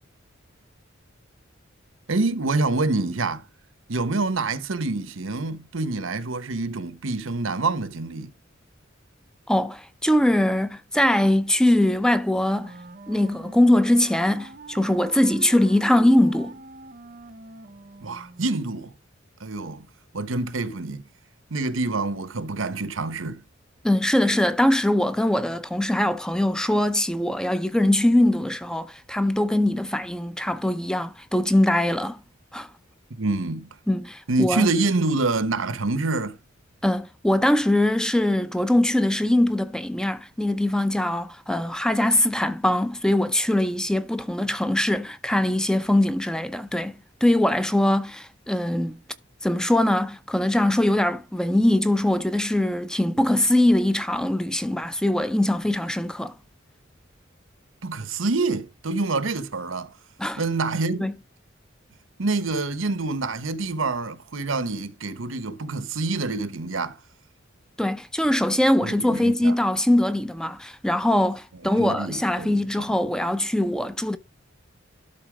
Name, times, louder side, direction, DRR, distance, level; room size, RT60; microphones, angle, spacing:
voice 1, 2.1-3.4 3.9-8.3 18.0-18.9 19.4-19.9 20.1-21.1 21.5-23.4 33.2-33.7 34.3-36.4 57.8-59.9 60.4-61.1 62.2-67.0 68.8-69.5 71.8-72.6, right 3 dB, 85° right, 1.0 m, -26 dB
voice 2, 9.5-12.7 13.1-16.6 23.8-32.2 32.5-32.7 33.9-34.7 36.8-49.0 49.4-56.3 60.2-60.4 61.0-61.1 67.8-74.2, left 1 dB, 5° left, 0.6 m, -22 dB
Wind instrument woodwind instrument, 12.5-18.7, right 3 dB, 45° right, 0.8 m, -43 dB
12.0 x 4.1 x 4.9 m
head